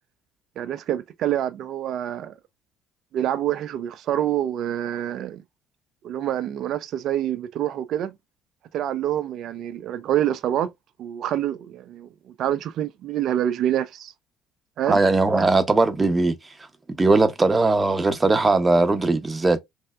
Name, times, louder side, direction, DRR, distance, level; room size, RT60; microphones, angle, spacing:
voice 1, 0.6-2.3 3.1-5.4 6.0-8.1 8.7-10.7 11.0-12.1 12.4-14.1 14.8-15.0, right 11 dB, 60° right, 0.4 m, -26 dB
voice 2, 14.9-16.3 17.0-19.6, right 3 dB, 20° right, 0.8 m, -19 dB
3.3 x 2.6 x 2.4 m
supercardioid pair, 75°, 0 cm